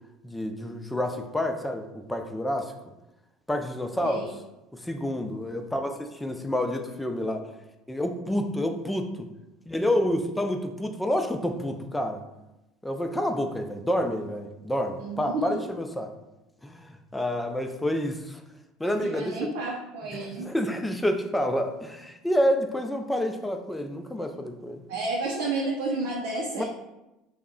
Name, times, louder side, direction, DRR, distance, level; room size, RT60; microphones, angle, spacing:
voice 1, 0.2-2.7 3.5-4.2 4.7-7.4 7.9-9.3 9.7-12.2 12.8-16.1 16.6-18.4 18.8-19.5 20.1-24.8 26.6-26.7, equal, 5° left, 5 dB, 0.3 m, -28 dB
voice 2, 4.0-4.3 15.0-15.6 18.8-20.5 24.9-26.6, right 2 dB, 75° right, -2 dB, 0.4 m, -31 dB
2.2 x 2.0 x 3.6 m, 0.95 s
supercardioid pair, 95°, 0 cm